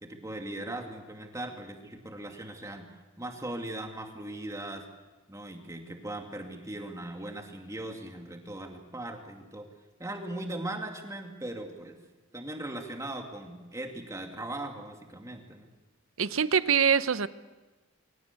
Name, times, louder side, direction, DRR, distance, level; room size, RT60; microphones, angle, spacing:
voice 1, 0.0-4.8 5.3-9.7 10.0-12.0 12.3-15.7, right 1 dB, 15° right, 3 dB, 2.5 m, -39 dB
voice 2, 16.2-17.3, right 7 dB, 80° right, 15 dB, 0.8 m, -24 dB
23.5 x 18.0 x 8.2 m, 1.2 s
head